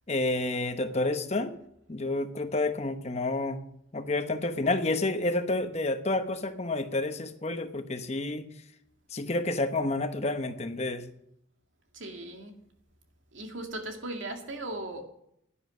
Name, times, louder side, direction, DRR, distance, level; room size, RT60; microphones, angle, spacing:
voice 1, 0.1-1.5 1.9-3.6 3.9-8.4 9.1-11.0, left 2 dB, 35° left, 9 dB, 0.8 m, -29 dB
voice 2, 11.9-12.5 13.3-15.0, right 1 dB, 85° right, 3 dB, 2.2 m, -37 dB
10.5 x 9.9 x 6.1 m, 0.72 s
head